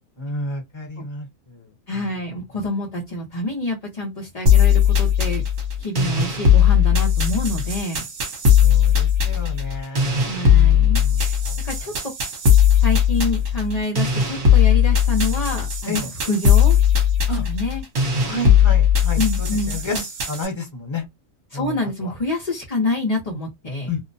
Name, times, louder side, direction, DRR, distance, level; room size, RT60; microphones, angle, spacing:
voice 1, 0.2-1.7 8.6-11.5 15.9-16.1 17.3-17.4 18.2-21.0 21.5-22.1 23.9-24.0, left 2 dB, 20° left, 1.0 m, -31 dB
voice 2, 1.9-5.4 5.8-8.0 10.3-11.4 11.6-11.9 12.8-16.8 17.5-17.8 19.2-20.0 21.5-23.9, left 2 dB, 40° left, 0.6 m, -27 dB
sound 1, 4.5-20.5, left 8 dB, 60° right, 1.3 m, -18 dB
2.7 x 2.1 x 2.6 m
omnidirectional pair, 1.6 m